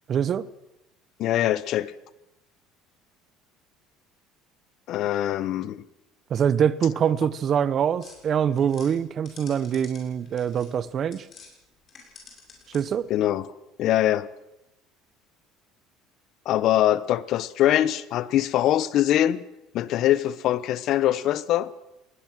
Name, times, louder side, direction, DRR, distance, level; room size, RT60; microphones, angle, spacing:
voice 1, 0.1-0.5 6.3-11.3 12.7-13.1, right 8 dB, 40° right, 0.9 m, -24 dB
voice 2, 1.2-1.9 4.9-5.8 13.1-13.5 13.8-14.3 16.4-19.4 19.7-21.7, left 12 dB, 55° left, 1.0 m, -23 dB
sound 1, 8.0-11.5 11.8-13.1, left 5 dB, 40° left, 7.0 m, -49 dB
20.0 x 19.5 x 7.6 m
cardioid pair, 130°, 0 cm